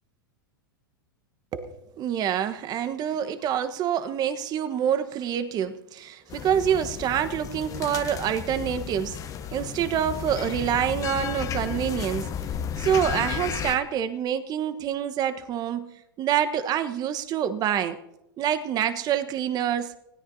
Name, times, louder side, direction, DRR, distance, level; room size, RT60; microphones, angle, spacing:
voice 1, 1.5-9.2 9.5-12.3 12.7-18.0 18.4-20.0, right 9 dB, 35° right, 11 dB, 1.2 m, -26 dB
sound 1, 6.3-13.8, left 8 dB, 30° left, 1.0 m, -33 dB
25.0 x 17.0 x 2.8 m, 0.91 s
hypercardioid pair, 105°, 12 cm